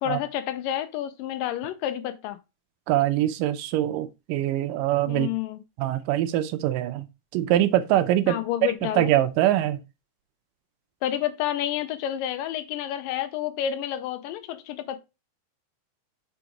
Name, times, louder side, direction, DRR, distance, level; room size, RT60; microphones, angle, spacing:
voice 1, 0.0-2.4 5.1-5.6 8.3-9.1 11.0-15.0, left 11 dB, 85° left, 2.3 m, -29 dB
voice 2, 2.9-5.3 5.8-7.1 7.3-9.8, right 13 dB, 80° right, 2.2 m, -23 dB
5.8 x 4.1 x 4.6 m
omnidirectional pair, 3.9 m